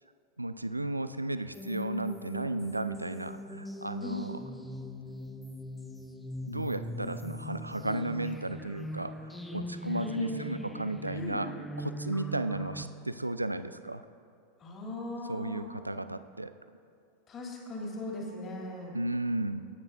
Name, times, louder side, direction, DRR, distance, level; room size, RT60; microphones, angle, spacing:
voice 1, 0.4-4.4 6.5-11.5 11.8-14.0 15.3-16.5 18.9-19.7, right 1 dB, 85° right, 12 dB, 0.4 m, -34 dB
sound 1, 1.5-12.8, equal, 5° left, 0.7 m, -41 dB
voice 2, 10.0-10.6 11.1-11.4 14.6-15.6 17.3-18.9, left 2 dB, 25° left, -2 dB, 2.9 m, -38 dB
25.5 x 9.1 x 2.7 m, 2.4 s
figure-of-eight pair, 90°, 0 cm